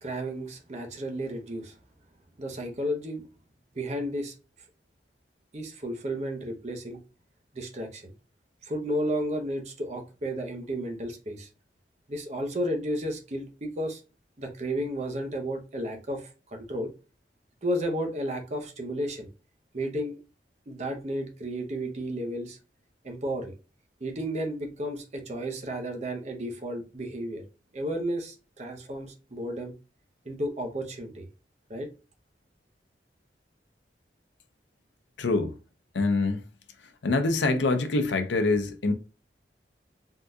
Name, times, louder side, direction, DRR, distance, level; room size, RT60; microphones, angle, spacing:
voice 1, 0.0-1.8 2.4-3.3 3.7-4.3 5.5-7.0 7.5-8.1 8.6-11.5 12.1-14.0 14.4-16.9 17.6-19.3 19.7-20.2 20.7-22.6 23.0-23.5 24.0-27.4 27.7-29.7 30.2-31.3 31.7-31.9, equal, 40° right, 0.7 m, -32 dB
voice 2, 35.2-35.5 35.9-36.4 37.0-38.9, left 3 dB, 90° left, 0.6 m, -25 dB
3.6 x 2.7 x 2.3 m
head